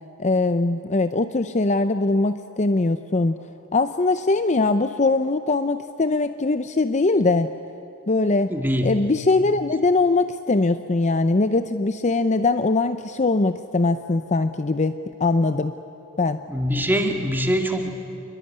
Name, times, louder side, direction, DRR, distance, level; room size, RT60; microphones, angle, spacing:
voice 1, 0.2-3.4 3.7-7.5 8.1-8.5 8.8-15.7 16.2-16.4, left 3 dB, 30° left, 10 dB, 0.6 m, -21 dB
voice 2, 8.5-9.1 16.5-17.9, equal, 10° right, 3 dB, 2.1 m, -23 dB
27.5 x 22.0 x 9.9 m, 2.8 s
head